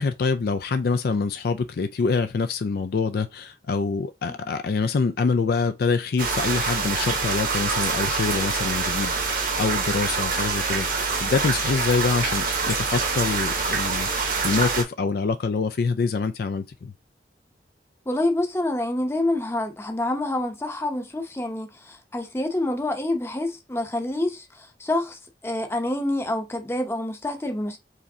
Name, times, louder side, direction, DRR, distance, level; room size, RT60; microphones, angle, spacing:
voice 1, 0.0-16.9, left 4 dB, 60° left, 0.4 m, -25 dB
sound 1, 6.2-14.8, right 4 dB, 50° right, 1.0 m, -25 dB
voice 2, 18.1-27.8, left 1 dB, 15° left, 0.7 m, -27 dB
4.8 x 3.2 x 2.7 m
head